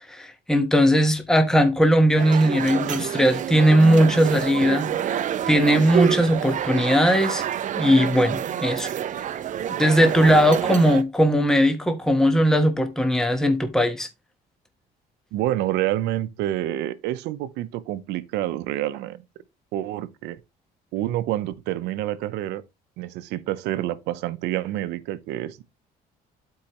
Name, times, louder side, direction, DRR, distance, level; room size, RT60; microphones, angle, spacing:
voice 1, 0.1-7.4 7.8-8.9 9.8-14.1, equal, 5° left, 1.2 m, -19 dB
sound 1, 2.2-11.0, right 9 dB, 50° right, 0.7 m, -28 dB
voice 2, 15.3-19.2 19.7-20.4 20.9-22.6 23.0-25.6, right 14 dB, 90° right, 0.7 m, -28 dB
11.5 x 4.7 x 3.0 m
cardioid pair, 110°, 17 cm